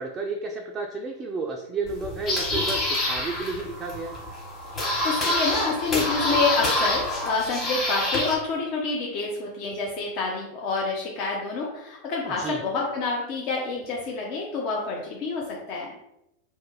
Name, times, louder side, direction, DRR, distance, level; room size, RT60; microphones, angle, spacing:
voice 1, 0.0-4.1 12.4-12.6, right 3 dB, 20° right, 2 dB, 0.3 m, -32 dB
sound 1, 1.9-8.3, left 1 dB, 20° left, 1.2 m, -27 dB
voice 2, 4.7-15.9, left 4 dB, 40° left, -2 dB, 0.5 m, -28 dB
2.5 x 2.4 x 3.9 m, 0.86 s
figure-of-eight pair, 90°, 0 cm